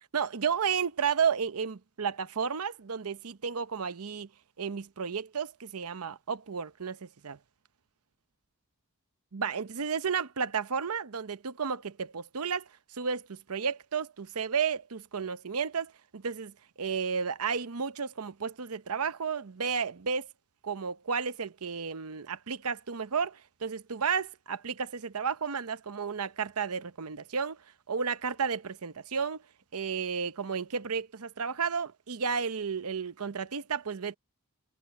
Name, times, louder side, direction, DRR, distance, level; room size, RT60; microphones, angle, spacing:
voice 1, 0.1-4.3 4.6-7.4 9.3-12.7 12.9-20.3 20.6-27.6 27.9-29.4 29.7-34.2, right 6 dB, 85° right, 0.8 m, -32 dB
head